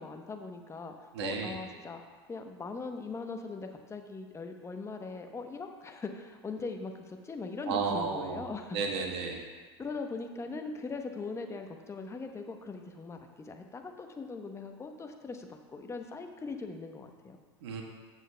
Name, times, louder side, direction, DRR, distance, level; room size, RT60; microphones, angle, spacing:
voice 1, 0.0-0.9 1.2-2.0 2.3-8.8 9.2-9.4 9.8-17.4, left 4 dB, 20° left, 5 dB, 0.9 m, -40 dB
voice 2, 1.1-1.5 7.7-8.4 8.7-9.4 17.6-17.8, right 5 dB, 70° right, 1 dB, 1.4 m, -32 dB
14.0 x 7.4 x 2.3 m, 1.5 s
hypercardioid pair, 90°, 15 cm